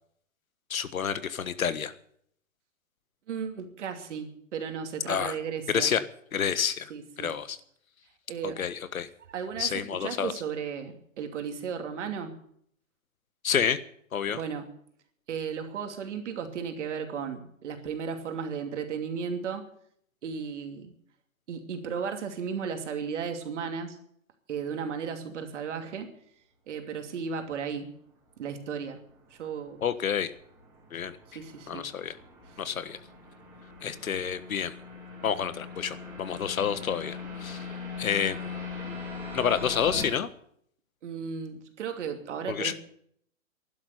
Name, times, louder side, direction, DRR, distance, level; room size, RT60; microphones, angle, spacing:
voice 1, 0.7-1.9 5.1-5.3 5.7-6.0 6.3-6.9 7.2-7.6 8.6-9.1 9.6-10.3 13.4-13.8 14.1-14.4 29.8-30.3 30.9-31.2 31.7-32.1 32.6-33.0 33.8-34.7 35.2-37.7 38.0-38.6 39.3-40.3 42.5-42.7, left 7 dB, 85° left, 13 dB, 1.5 m, -29 dB
voice 2, 3.3-5.9 6.9-7.4 8.3-8.7 9.3-12.4 14.3-14.7 15.3-19.7 20.2-20.9 21.5-24.0 24.5-26.1 26.7-27.9 28.4-29.0 29.3-29.8 31.3-31.8 32.5-32.6 41.0-42.7, right 6 dB, 60° right, 5 dB, 2.8 m, -35 dB
sound 1, 28.6-40.0, left 4 dB, 5° right, 4.3 m, -41 dB
11.5 x 11.5 x 9.4 m, 0.66 s
hypercardioid pair, 150°, 41 cm